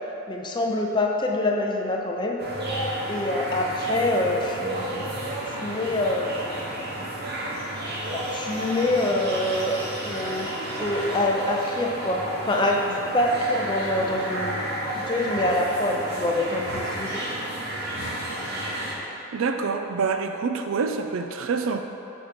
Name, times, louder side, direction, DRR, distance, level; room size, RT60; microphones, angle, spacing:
voice 1, 0.3-2.4 3.1-5.1 5.5-6.7 8.1-10.5 10.8-14.6 14.9-17.2, left 1 dB, 20° left, 0 dB, 0.4 m, -25 dB
sound 1, 2.4-19.0, right 1 dB, 50° right, 0.9 m, -31 dB
voice 2, 19.3-21.8, right 5 dB, 70° right, 6 dB, 0.4 m, -26 dB
5.5 x 4.4 x 5.0 m, 2.9 s
head